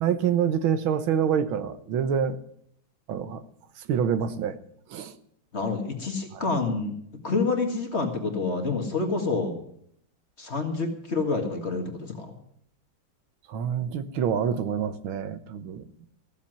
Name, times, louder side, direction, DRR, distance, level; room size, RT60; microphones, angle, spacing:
voice 1, 0.0-2.4 3.1-3.4 3.9-4.6 4.9-5.1 6.3-6.4 13.5-15.9, right 8 dB, 75° right, 12 dB, 1.7 m, -26 dB
voice 2, 5.5-6.9 7.2-9.6 10.4-12.4, left 3 dB, 35° left, 3 dB, 2.0 m, -28 dB
15.5 x 7.2 x 9.0 m, 0.68 s
omnidirectional pair, 2.3 m